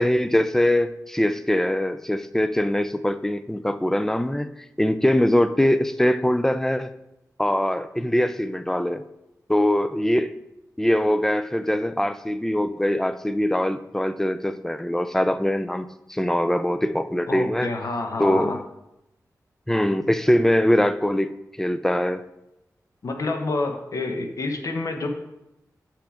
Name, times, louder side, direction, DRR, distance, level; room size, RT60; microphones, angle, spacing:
voice 1, 0.0-4.5 4.8-6.9 7.4-9.0 9.5-10.3 10.8-17.7 18.2-18.6 19.7-22.2, left 1 dB, 5° left, 12 dB, 0.4 m, -22 dB
voice 2, 17.3-18.6 23.0-25.1, left 3 dB, 60° left, 4 dB, 1.1 m, -28 dB
5.9 x 5.8 x 5.0 m, 0.90 s
wide cardioid pair, 80°, 6 cm